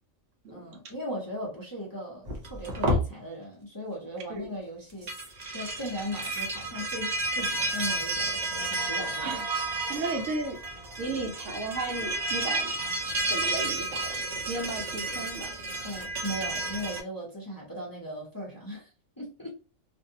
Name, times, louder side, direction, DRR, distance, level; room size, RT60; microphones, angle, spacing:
voice 1, 0.5-5.1 5.5-9.4 15.8-18.9 19.2-19.5, equal, 20° left, 0.7 m, -38 dB
sound 1, 2.3-3.1 4.9-17.0, right 2 dB, 40° right, 0.7 m, -31 dB
voice 2, 9.9-10.6 11.0-12.7 13.3-14.2 14.5-15.5, right 2 dB, 70° right, 1.0 m, -34 dB
2.6 x 2.3 x 2.7 m
omnidirectional pair, 1.4 m